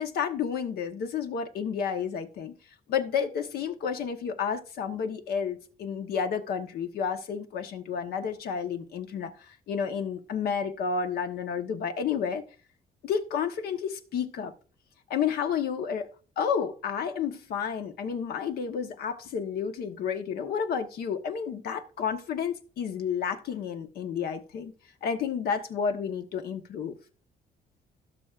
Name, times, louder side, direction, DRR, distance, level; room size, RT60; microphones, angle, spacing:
voice 1, 0.0-2.5 2.9-9.3 9.7-12.4 13.0-14.5 15.1-16.1 16.4-24.7 25.0-27.0, left 7 dB, 90° left, 1.2 m, -31 dB
17.0 x 6.2 x 2.5 m
cardioid pair, 120°, 16 cm